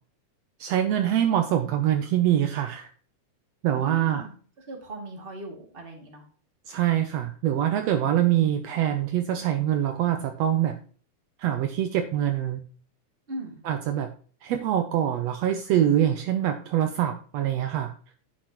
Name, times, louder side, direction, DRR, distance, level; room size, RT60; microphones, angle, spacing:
voice 1, 0.6-2.9 3.6-4.2 6.7-10.8 11.4-12.6 13.6-14.1 14.4-17.9, right 11 dB, 80° right, 7 dB, 1.5 m, -24 dB
voice 2, 3.7-6.2 13.3-13.6, right 2 dB, 20° right, 0 dB, 2.2 m, -39 dB
10.0 x 8.3 x 3.0 m, 0.43 s
omnidirectional pair, 3.8 m